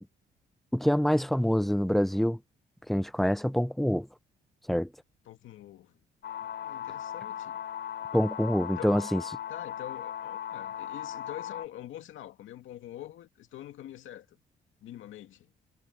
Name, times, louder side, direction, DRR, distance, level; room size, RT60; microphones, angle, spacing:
voice 1, 0.7-2.4 2.9-4.1 4.7-4.9 8.1-9.2, equal, ahead, 0.4 m, -26 dB
voice 2, 5.3-6.0 6.4-7.6 8.8-9.0 9.5-14.4 14.8-15.5, left 12 dB, 80° left, 2.4 m, -45 dB
sound 1, 6.2-11.7, left 10 dB, 60° left, 3.2 m, -38 dB
cardioid pair, 90°, 20 cm